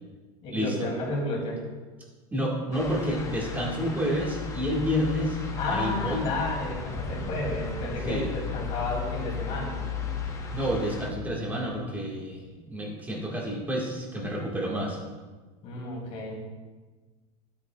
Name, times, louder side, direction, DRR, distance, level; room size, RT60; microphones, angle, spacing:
voice 1, 0.4-1.6 5.6-9.8 15.6-16.4, left 2 dB, 35° left, -1 dB, 2.7 m, -32 dB
voice 2, 2.3-5.4 5.7-6.2 8.1-8.3 10.5-15.0, equal, 10° right, -3 dB, 1.7 m, -29 dB
sound 1, 2.7-11.1, left 5 dB, 15° left, 0.8 m, -35 dB
12.5 x 8.7 x 2.4 m, 1.3 s
supercardioid pair, 160°, 19 cm